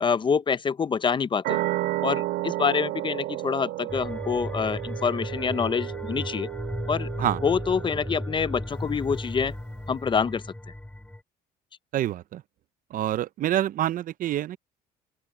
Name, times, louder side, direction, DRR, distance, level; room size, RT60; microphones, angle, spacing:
voice 1, 0.0-1.6 2.0-6.5 6.9-9.5 9.9-10.4, left 6 dB, 30° left, 0.6 m, -26 dB
sound 1, 1.4-8.7, right 16 dB, 85° right, 2.5 m, -32 dB
sound 2, 3.9-11.2, left 1 dB, 5° left, 6.7 m, -35 dB
voice 2, 11.9-12.4 12.9-14.6, right 12 dB, 55° right, 0.5 m, -26 dB
open air
cardioid pair, 110°, 17 cm